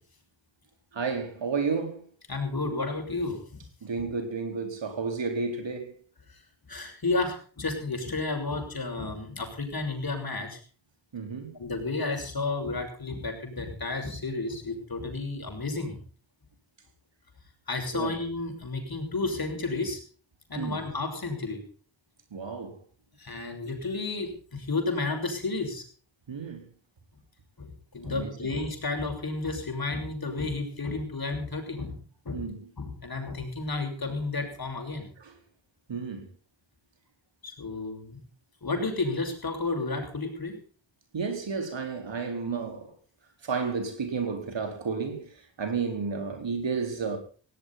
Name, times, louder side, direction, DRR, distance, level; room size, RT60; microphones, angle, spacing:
voice 1, 0.9-2.1 3.8-6.0 11.1-11.6 17.9-18.2 20.6-20.8 22.3-22.8 26.3-26.6 28.1-28.5 32.3-32.6 35.2-35.3 35.9-36.3 41.1-42.9 43.4-45.3 45.6-47.2, right 5 dB, 70° right, 4.6 m, -32 dB
voice 2, 2.3-3.6 6.7-10.6 11.6-16.0 17.7-20.0 20.5-21.6 23.2-25.8 27.6-32.0 32.2-32.4 32.8-35.1 37.4-38.2 38.6-40.6, left 3 dB, 50° left, 6.4 m, -32 dB
18.5 x 17.0 x 4.2 m
cardioid pair, 50°, 46 cm